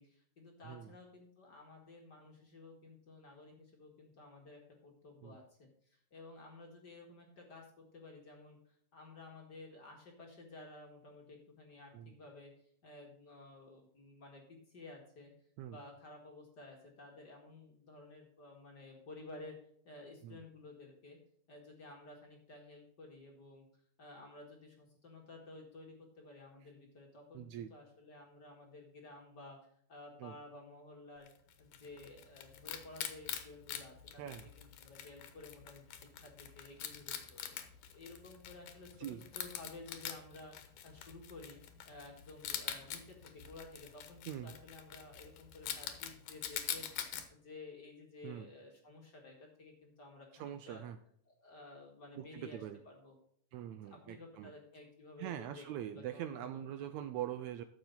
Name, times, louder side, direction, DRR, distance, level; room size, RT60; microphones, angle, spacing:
voice 1, 0.0-15.3 15.6-19.5 19.9-21.2 21.5-23.7 24.0-29.6 29.9-31.3 31.6-34.3 34.6-37.4 37.9-41.6 41.9-50.8 51.3-53.2 53.9-56.5, left 2 dB, 35° left, 0 dB, 2.0 m, -54 dB
voice 2, 27.3-27.7 30.2-30.3 34.2-34.5 39.0-39.3 44.3-44.5 48.2-48.5 50.3-51.0 52.2-52.8 53.5-54.5 55.2-57.6, right 11 dB, 80° right, 10 dB, 1.7 m, -43 dB
Wild animals, 31.3-47.3, left 9 dB, 85° left, 2.7 m, -45 dB
12.5 x 7.2 x 4.0 m, 0.65 s
omnidirectional pair, 3.6 m